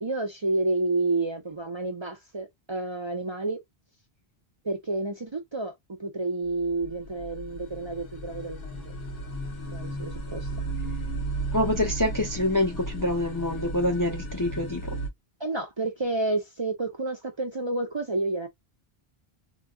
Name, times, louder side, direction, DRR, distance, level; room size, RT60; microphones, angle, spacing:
voice 1, 0.0-3.6 4.6-8.9 9.7-10.5 15.4-18.5, right 2 dB, 35° right, 0.5 m, -30 dB
sound 1, 6.5-15.1, right 2 dB, 65° left, 1.0 m, -34 dB
voice 2, 11.5-14.9, left 1 dB, 30° left, 0.4 m, -26 dB
2.2 x 2.2 x 3.6 m
omnidirectional pair, 1.0 m